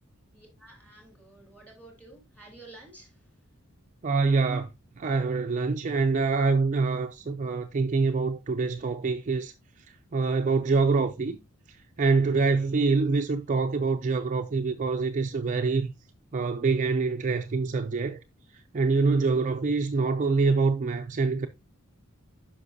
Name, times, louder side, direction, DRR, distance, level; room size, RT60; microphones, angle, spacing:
voice 1, 0.3-3.1, right 2 dB, 5° left, 3.7 m, -51 dB
voice 2, 4.0-4.7 5.0-9.5 10.1-11.4 12.0-15.9 16.3-18.2 18.7-21.5, right 4 dB, 35° right, 0.4 m, -25 dB
9.6 x 5.8 x 2.6 m
head